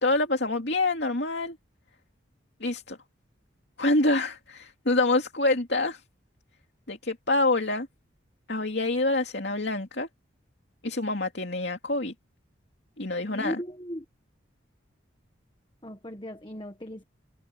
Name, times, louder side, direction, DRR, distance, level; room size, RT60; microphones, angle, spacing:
voice 1, 0.0-1.6 2.6-3.0 3.8-6.0 6.9-7.9 8.5-10.1 10.8-12.1 13.0-13.6, left 2 dB, 60° left, 2.7 m, -26 dB
voice 2, 13.2-14.0 15.8-17.0, equal, 25° left, 1.5 m, -37 dB
head